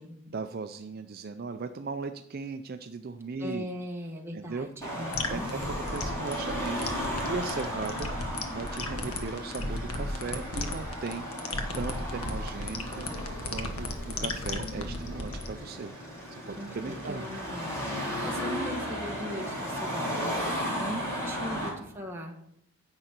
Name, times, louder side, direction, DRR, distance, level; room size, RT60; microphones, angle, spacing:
voice 1, 0.3-3.7 4.3-4.7 5.3-8.1 8.5-11.3 11.8-15.9 16.3-17.3 20.6-21.1, right 4 dB, 45° right, 8 dB, 0.4 m, -38 dB
voice 2, 3.4-5.5 16.6-17.7 18.2-22.4, equal, 10° right, 0 dB, 1.3 m, -39 dB
Car passing by / Traffic noise roadway noise / Engine, 4.8-21.7, equal, 15° left, 3.9 m, -35 dB
sound 1, 5.1-15.5, left 2 dB, 90° left, 1.3 m, -35 dB
10.5 x 8.0 x 4.4 m, 0.74 s
head